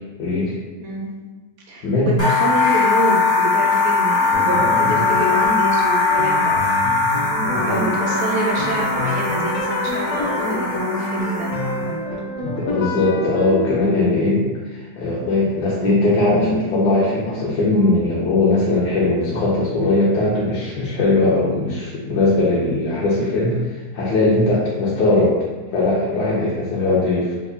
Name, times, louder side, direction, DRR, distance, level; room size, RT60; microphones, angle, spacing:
voice 1, 0.2-0.5 1.8-2.1 4.8-4.9 7.5-7.8 12.4-23.6 23.9-25.4 25.7-27.3, left 2 dB, 85° left, -6 dB, 1.3 m, -19 dB
voice 2, 0.8-1.1 1.7-6.6 7.6-11.5, right 2 dB, 70° right, -2 dB, 1.0 m, -27 dB
sound 1, 2.2-11.9, left 4 dB, 45° left, 0.5 m, -20 dB
sound 2, 4.3-13.7, left 2 dB, 65° left, 0.9 m, -27 dB
3.7 x 2.1 x 3.4 m, 1.3 s
omnidirectional pair, 1.8 m